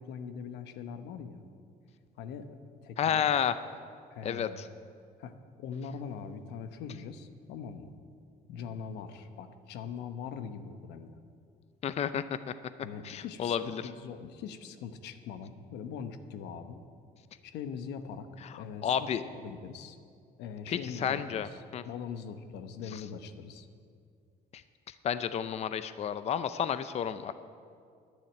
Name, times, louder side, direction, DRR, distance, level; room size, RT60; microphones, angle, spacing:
voice 1, 0.0-1.4 2.2-2.5 2.8-3.3 4.1-4.6 5.2-7.9 8.5-11.2 12.8-16.8 17.4-18.3 18.5-20.0 20.4-23.7, left 6 dB, 85° left, 9 dB, 1.0 m, -42 dB
voice 2, 3.0-3.5 4.2-4.7 11.8-12.2 13.0-13.8 18.8-19.2 20.7-21.8 25.0-27.3, left 8 dB, 40° left, 12 dB, 0.5 m, -31 dB
10.5 x 10.0 x 9.1 m, 2.3 s
cardioid pair, 110°, 17 cm